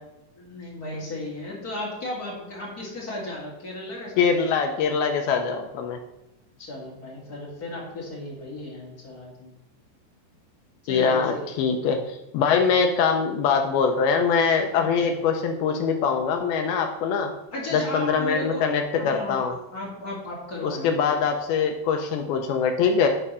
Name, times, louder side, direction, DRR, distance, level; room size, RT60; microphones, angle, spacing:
voice 1, 0.4-4.2 6.6-9.5 10.8-11.5 14.7-15.2 17.5-18.7 19.0-21.3 22.3-22.5, left 1 dB, 40° left, -4 dB, 1.4 m, -35 dB
voice 2, 4.2-6.0 10.9-17.3 17.7-19.6 20.6-23.1, left 6 dB, 80° left, 4 dB, 2.3 m, -23 dB
11.0 x 4.8 x 5.5 m, 0.92 s
omnidirectional pair, 5.0 m